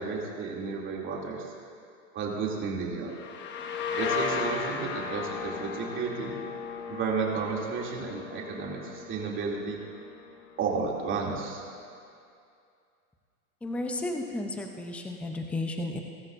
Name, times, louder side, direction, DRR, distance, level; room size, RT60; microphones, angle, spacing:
voice 1, 0.0-1.5 2.1-3.2 3.9-6.3 6.8-9.8 10.6-11.6, right 5 dB, 25° right, -3 dB, 2.8 m, -32 dB
sound 1, 3.1-10.7, left 5 dB, 25° left, 1.1 m, -36 dB
voice 2, 13.6-16.0, left 2 dB, 5° left, 3 dB, 0.6 m, -33 dB
22.5 x 13.5 x 2.6 m, 2.4 s
hypercardioid pair, 120°, 44 cm